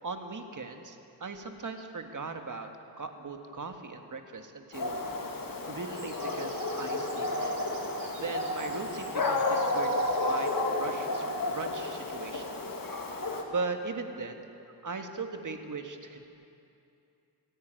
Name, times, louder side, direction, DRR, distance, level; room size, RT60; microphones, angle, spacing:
voice 1, 0.0-2.7 3.0-4.9 5.7-7.6 8.2-12.6 13.4-14.5 14.8-16.3, right 4 dB, 50° right, 5 dB, 1.8 m, -39 dB
Dog, 4.7-13.4, left 2 dB, 55° left, 2.2 m, -31 dB
sound 1, 5.9-11.2, right 4 dB, 85° right, 2.5 m, -52 dB
28.5 x 10.0 x 9.1 m, 2.7 s
wide cardioid pair, 90°, 41 cm